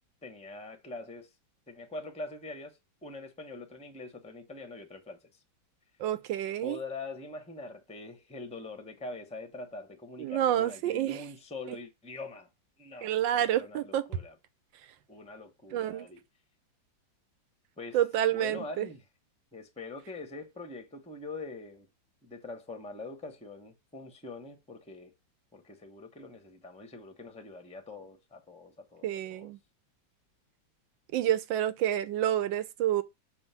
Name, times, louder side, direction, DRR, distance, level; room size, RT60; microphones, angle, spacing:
voice 1, 0.2-1.3 1.7-5.2 6.6-12.5 12.8-14.4 15.1-16.2 17.8-18.0 18.3-19.0 19.5-21.9 22.2-25.1 25.5-29.5, left 3 dB, 5° left, 0.6 m, -43 dB
voice 2, 6.0-6.8 10.2-11.2 11.7-11.8 13.0-14.0 15.7-16.1 17.9-18.9 29.0-29.6 31.1-33.0, right 11 dB, 75° right, 1.3 m, -28 dB
7.0 x 2.8 x 5.5 m
omnidirectional pair, 2.1 m